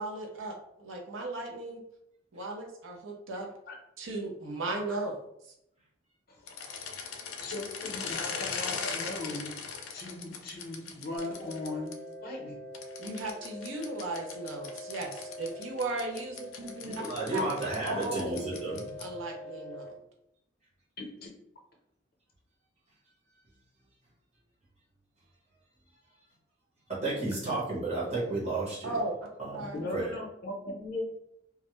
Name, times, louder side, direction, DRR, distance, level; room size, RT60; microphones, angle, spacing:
voice 1, 0.0-1.8 2.3-3.5 4.0-5.2 13.0-18.6 19.0-19.9 28.8-29.2 29.5-29.9, right 2 dB, 75° right, 0 dB, 0.6 m, -36 dB
sound 1, 6.4-11.9 12.7-19.2, left 5 dB, 85° left, 0.4 m, -40 dB
voice 2, 7.4-9.5 9.9-12.6 21.0-21.3 29.7-31.0, left 2 dB, 45° left, -1 dB, 0.6 m, -38 dB
sound 2, 11.2-19.9, left 1 dB, 5° right, 0.6 m, -45 dB
voice 3, 16.8-18.9 26.9-28.9 29.4-30.1, right 2 dB, 30° right, -7 dB, 0.9 m, -33 dB
2.3 x 2.0 x 2.9 m, 0.78 s
head